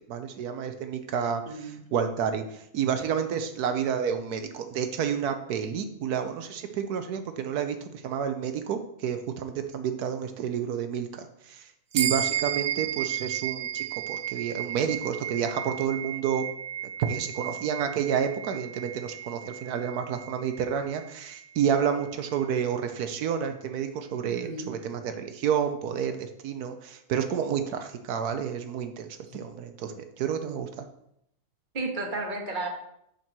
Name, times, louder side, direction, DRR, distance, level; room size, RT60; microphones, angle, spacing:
voice 1, 0.0-16.4 17.0-30.9, right 8 dB, 85° right, 7 dB, 1.3 m, -30 dB
voice 2, 1.5-1.8 24.2-24.7 31.7-32.7, right 2 dB, 35° right, 1 dB, 1.6 m, -33 dB
sound 1, 11.9-21.7, right 10 dB, 55° right, 0.6 m, -34 dB
9.9 x 4.5 x 6.0 m, 0.76 s
omnidirectional pair, 1.6 m